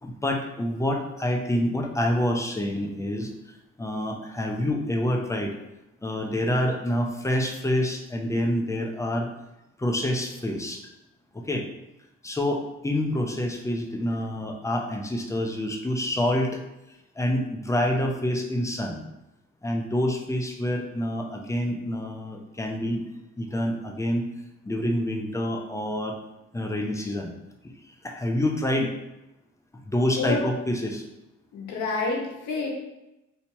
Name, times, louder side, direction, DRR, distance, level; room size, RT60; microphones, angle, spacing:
voice 1, 0.0-3.3 3.8-5.6 6.0-9.3 9.8-10.9 11.3-11.7 12.2-16.6 17.2-19.0 19.6-23.0 23.4-24.2 24.7-26.2 26.5-27.3 28.0-28.9 29.8-31.0, left 1 dB, 10° left, 2 dB, 0.5 m, -27 dB
voice 2, 31.5-32.7, left 4 dB, 75° left, -1 dB, 1.1 m, -28 dB
2.8 x 2.8 x 4.4 m, 0.92 s
cardioid pair, 90°, 30 cm